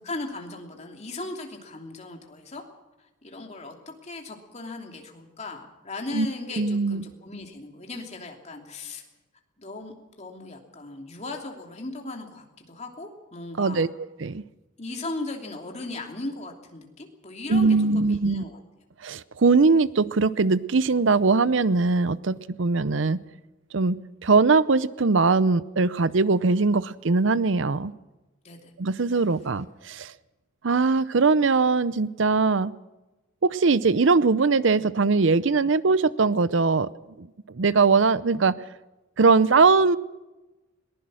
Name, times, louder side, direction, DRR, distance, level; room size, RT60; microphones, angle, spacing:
voice 1, 0.0-2.6 3.2-9.0 9.6-13.9 14.8-18.6 28.4-28.7, left 2 dB, 35° left, 2 dB, 2.9 m, -37 dB
voice 2, 6.6-7.0 13.6-13.9 14.2-14.4 17.5-18.4 19.0-23.2 23.7-27.9 28.8-30.1 30.6-32.7 33.4-36.9 37.2-37.3 37.5-38.6 39.2-40.0, right 4 dB, 65° right, 17 dB, 0.6 m, -21 dB
21.5 x 20.0 x 6.3 m, 1.1 s
head